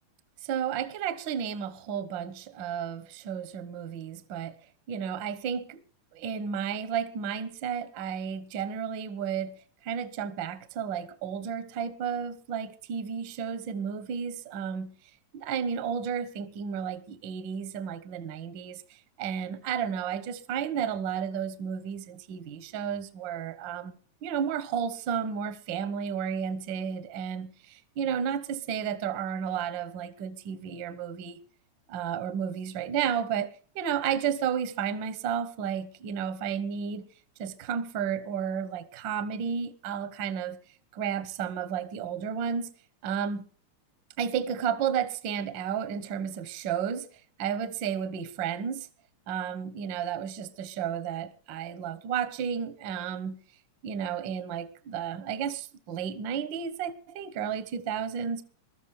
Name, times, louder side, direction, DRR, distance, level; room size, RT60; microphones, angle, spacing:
voice 1, 0.4-4.6 4.9-5.8 6.1-14.9 15.3-31.4 31.9-37.1 37.4-40.6 40.9-42.7 43.0-43.5 44.2-47.1 47.4-48.9 49.3-53.4 53.8-58.4, right 8 dB, 60° right, 1.3 m, -32 dB
21.0 x 13.0 x 3.3 m
omnidirectional pair, 3.3 m